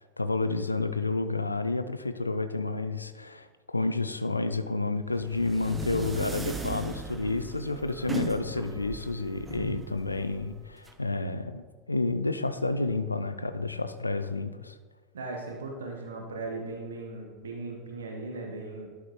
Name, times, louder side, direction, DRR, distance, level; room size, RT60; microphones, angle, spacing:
voice 1, 0.2-14.7, left 3 dB, 90° left, 11 dB, 0.3 m, -30 dB
sound 1, 5.1-10.9, right 3 dB, 15° right, 0.7 m, -38 dB
voice 2, 15.1-18.9, right 3 dB, 75° right, 2 dB, 1.0 m, -38 dB
11.5 x 4.8 x 3.0 m, 1.5 s
figure-of-eight pair, 80°, 0 cm